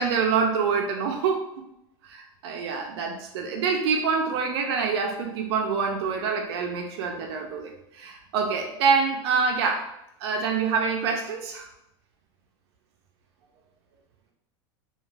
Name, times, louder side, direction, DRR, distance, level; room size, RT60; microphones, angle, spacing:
voice 1, 0.0-1.4 2.0-9.8 10.2-11.7, right 5 dB, 70° right, 2 dB, 0.5 m, -26 dB
2.3 x 2.3 x 3.2 m, 0.82 s
supercardioid pair, 160°, 14 cm